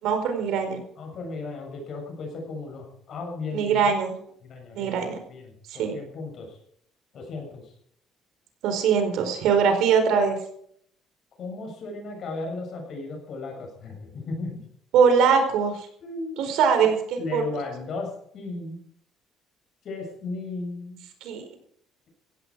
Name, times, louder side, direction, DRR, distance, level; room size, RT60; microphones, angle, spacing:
voice 1, 0.0-0.8 3.5-4.2 4.7-5.2 5.7-5.9 8.6-10.4 14.9-15.9 16.4-17.4 21.2-21.4, right 6 dB, 70° right, 6 dB, 4.7 m, -22 dB
voice 2, 1.0-3.9 4.4-6.6 7.1-7.7 11.4-14.6 16.0-16.6 17.2-18.8 19.8-21.1, left 3 dB, 40° left, 2 dB, 7.0 m, -35 dB
16.5 x 16.0 x 4.9 m, 0.65 s
cardioid pair, 175°, 0 cm